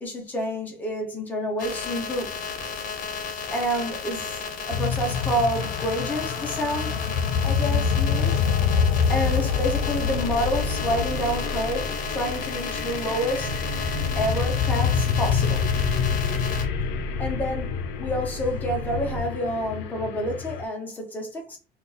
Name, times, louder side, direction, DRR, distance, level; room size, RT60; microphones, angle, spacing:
voice 1, 0.0-2.4 3.5-4.4 4.6-6.9 7.4-8.4 9.1-13.5 14.2-15.7 17.2-21.6, equal, 10° left, 0.8 m, -28 dB
sound 1, 1.6-16.6, left 5 dB, 55° left, 0.9 m, -33 dB
sound 2, 4.7-20.6, left 7 dB, 90° left, 0.4 m, -27 dB
sound 3, 9.2-19.2, right 2 dB, 20° right, 0.7 m, -35 dB
2.6 x 2.3 x 3.9 m
cardioid pair, 175°, 17 cm